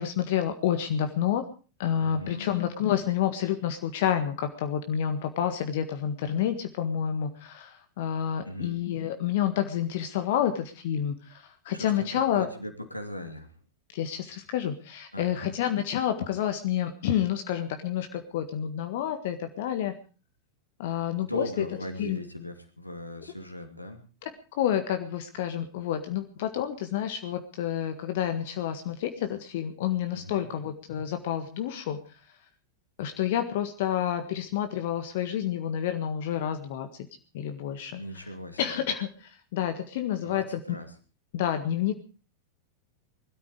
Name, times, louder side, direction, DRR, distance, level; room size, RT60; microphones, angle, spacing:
voice 1, 0.0-1.4 1.8-12.5 13.9-19.9 20.8-21.6 22.0-22.2 24.2-32.0 33.0-37.1 37.3-38.0 38.6-40.6 41.3-41.9, left 10 dB, 55° left, 7 dB, 1.7 m, -29 dB
voice 2, 2.0-2.6 8.4-8.8 11.7-13.5 15.1-15.6 21.2-24.0 30.1-30.5 38.0-38.6 40.2-40.9, left 1 dB, 85° left, 7 dB, 2.6 m, -38 dB
21.0 x 13.0 x 4.9 m, 0.38 s
figure-of-eight pair, 90°, 0 cm